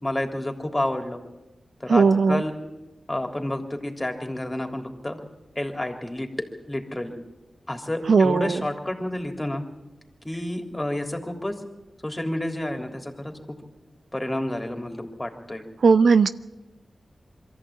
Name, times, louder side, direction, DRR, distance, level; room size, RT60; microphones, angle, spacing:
voice 1, 0.0-1.2 1.8-2.5 3.1-5.2 5.6-7.2 7.7-9.6 10.3-11.6 12.0-13.3 14.1-15.6, left 1 dB, 25° left, 4 dB, 3.5 m, -30 dB
voice 2, 1.9-2.4 8.1-8.6 15.8-16.3, right 5 dB, 80° right, 12 dB, 0.7 m, -17 dB
23.0 x 14.5 x 9.0 m, 1.0 s
cardioid pair, 45°, 0 cm